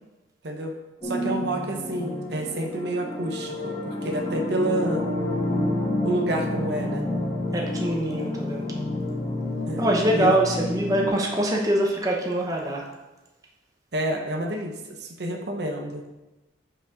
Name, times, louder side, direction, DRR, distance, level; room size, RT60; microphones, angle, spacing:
sound 1, 1.0-11.1, left 1 dB, 30° left, 1.7 m, -29 dB
voice 1, 1.0-5.0 6.0-7.1 9.7-9.9 10.1-10.4 13.9-16.0, right 1 dB, 55° right, 3 dB, 0.8 m, -29 dB
voice 2, 7.5-8.6 9.8-12.8, right 1 dB, 20° right, 0 dB, 0.8 m, -24 dB
5.9 x 5.4 x 5.0 m, 1.1 s
head